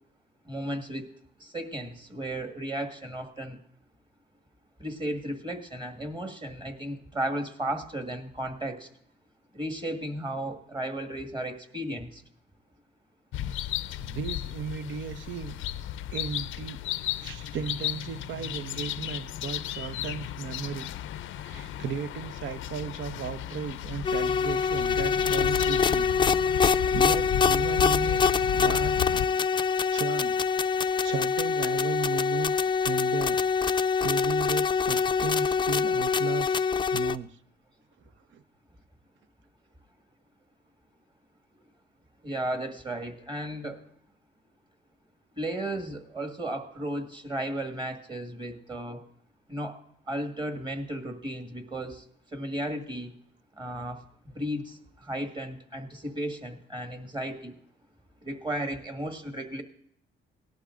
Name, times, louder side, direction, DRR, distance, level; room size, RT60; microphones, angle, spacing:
voice 1, 0.5-1.1 1.4-3.6 4.8-8.9 9.5-12.2 42.2-43.8 45.4-49.0 49.5-49.8 50.1-52.0 52.3-53.1 53.6-54.0 54.3-57.5 58.2-59.6, right 1 dB, 25° right, 5 dB, 1.8 m, -34 dB
sound 1, 13.3-29.3, left 12 dB, 80° left, 0.5 m, -34 dB
voice 2, 14.0-15.6 16.1-16.8 17.2-20.9 21.4-26.1 26.4-29.0 29.9-30.4 30.7-33.4 34.0-36.6 36.9-37.4 38.3-38.4, right 7 dB, 70° right, 12 dB, 0.7 m, -36 dB
sound 2, 24.0-37.2, left 6 dB, 25° left, 0.4 m, -25 dB
18.0 x 11.5 x 2.5 m, 0.71 s
cardioid pair, 90°, 20 cm